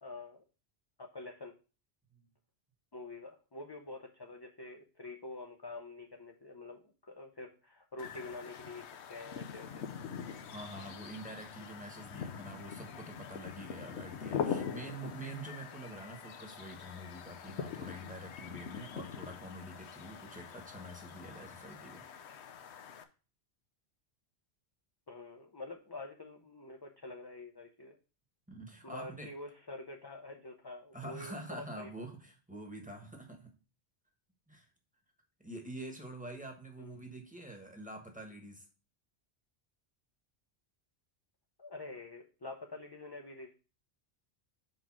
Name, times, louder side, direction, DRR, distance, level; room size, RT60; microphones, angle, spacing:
voice 1, 0.0-0.4 1.0-1.5 2.9-9.8 25.1-28.0 28.8-32.0 36.8-37.0 41.6-43.5, left 2 dB, 30° left, 1 dB, 0.6 m, -47 dB
sound 1, 8.0-23.0, left 7 dB, 85° left, 1.0 m, -43 dB
voice 2, 10.4-22.0 28.5-29.3 30.9-33.5 34.5-34.7 35.4-38.6, right 1 dB, 10° right, 2 dB, 1.2 m, -46 dB
4.7 x 4.6 x 6.0 m, 0.35 s
omnidirectional pair, 1.1 m